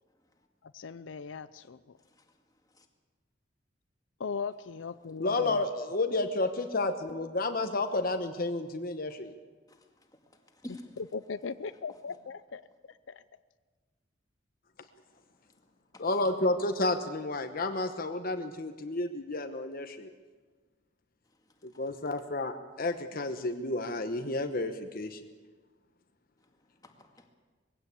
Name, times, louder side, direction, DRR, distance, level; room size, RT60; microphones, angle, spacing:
voice 1, 0.7-1.8 4.2-5.5 11.1-12.6 13.1-13.2, left 5 dB, 85° left, 14 dB, 0.5 m, -38 dB
voice 2, 5.2-9.3 16.0-20.1 21.8-25.2, left 2 dB, 50° left, 7 dB, 1.1 m, -31 dB
voice 3, 10.5-10.9 15.9-16.3 26.8-27.3, left 1 dB, 20° left, 3 dB, 2.2 m, -48 dB
21.0 x 16.0 x 8.4 m, 1.4 s
head